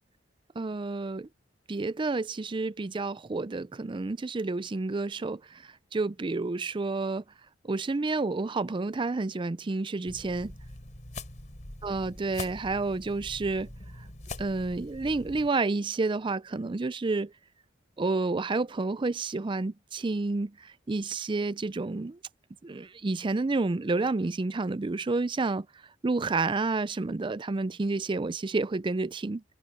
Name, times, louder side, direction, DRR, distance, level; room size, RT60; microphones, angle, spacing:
voice 1, 0.6-1.3 1.7-7.2 7.6-10.5 11.8-13.7 14.4-17.3 18.0-22.2 22.6-25.7 26.0-29.4, right 3 dB, 25° right, 0.4 m, -30 dB
sound 1, 10.1-15.5, left 2 dB, 40° left, 4.0 m, -43 dB
head